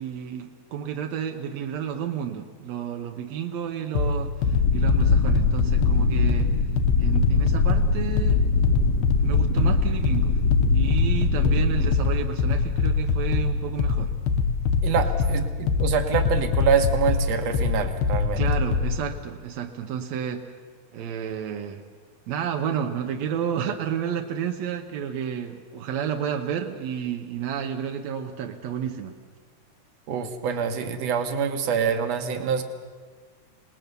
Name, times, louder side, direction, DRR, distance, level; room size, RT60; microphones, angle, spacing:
voice 1, 0.0-6.5 7.0-8.5 9.2-10.4 10.7-14.1 18.4-20.5 20.9-21.8 22.3-29.1, right 8 dB, 75° right, 4 dB, 1.6 m, -31 dB
sound 1, 4.0-19.0, left 5 dB, 85° left, 3.2 m, -24 dB
sound 2, 4.4-12.0, left 3 dB, 65° left, 1.7 m, -23 dB
voice 2, 14.8-18.4 30.1-32.6, right 6 dB, 55° right, 6 dB, 2.0 m, -25 dB
27.0 x 19.5 x 6.9 m, 1.5 s
omnidirectional pair, 4.7 m